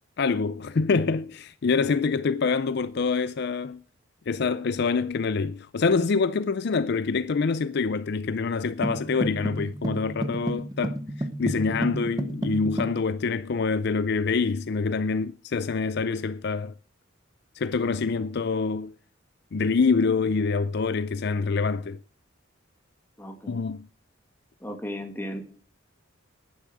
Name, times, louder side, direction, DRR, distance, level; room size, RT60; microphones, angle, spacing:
voice 1, 0.2-3.8 4.3-16.7 17.5-18.9 19.5-22.0 23.5-23.9, left 4 dB, 55° left, 0.4 m, -26 dB
sound 1, 8.8-13.0, right 1 dB, 20° right, 0.9 m, -31 dB
voice 2, 23.2-23.6 24.6-25.4, equal, 10° left, 2.3 m, -35 dB
10.0 x 9.5 x 6.2 m
head